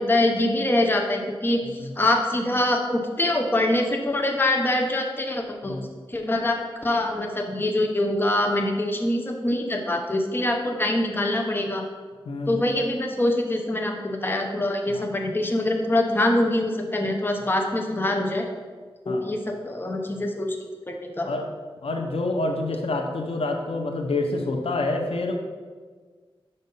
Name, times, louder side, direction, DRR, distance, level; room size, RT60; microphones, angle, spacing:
voice 1, 0.0-1.6 2.0-6.6 6.8-11.9 12.5-18.4 19.0-20.6 20.9-21.3, left 1 dB, 20° left, 2 dB, 0.7 m, -24 dB
voice 2, 21.8-25.4, left 2 dB, 85° left, 3 dB, 0.7 m, -27 dB
5.4 x 5.3 x 5.4 m, 1.5 s
wide cardioid pair, 100°, 10 cm